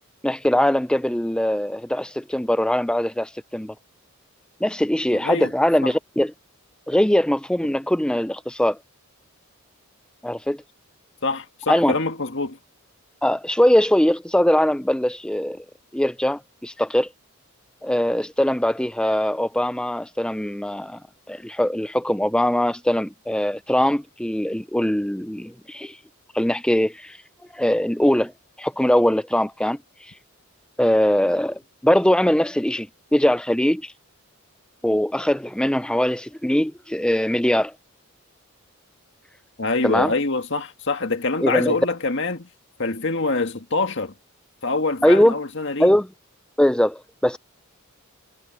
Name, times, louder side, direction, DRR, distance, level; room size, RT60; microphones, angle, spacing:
voice 1, 0.2-3.7 4.6-6.3 6.9-8.8 10.2-10.6 11.7-11.9 13.2-15.6 15.9-17.1 17.8-21.0 21.3-26.0 26.3-27.2 27.5-28.3 28.6-30.1 30.8-33.9 34.8-37.7 39.8-40.1 41.4-41.7 45.0-45.4 45.8-46.1 46.6-47.4, left 1 dB, 5° left, 0.5 m, -21 dB
voice 2, 5.1-5.5 5.8-5.9 11.2-12.6 39.6-42.5 42.8-44.1 44.6-46.0, left 3 dB, 55° left, 2.0 m, -25 dB
head